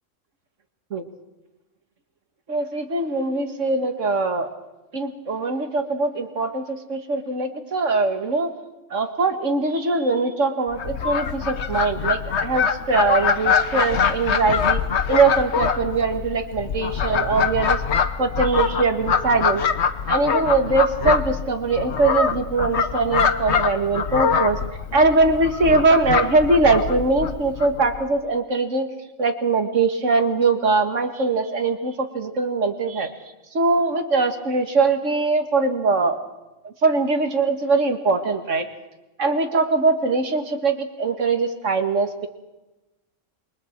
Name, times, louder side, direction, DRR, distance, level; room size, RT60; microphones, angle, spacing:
voice 1, 2.5-4.5 4.9-8.5 8.9-14.8 15.1-17.8 18.2-19.6 20.1-24.6 24.9-28.9 29.2-33.1 33.5-36.2 36.6-38.7 39.2-42.3, right 3 dB, 70° right, 6 dB, 2.2 m, -21 dB
Fowl, 10.7-28.0, left 6 dB, 60° left, 1.3 m, -24 dB
27.5 x 23.0 x 4.6 m, 1.0 s
omnidirectional pair, 1.3 m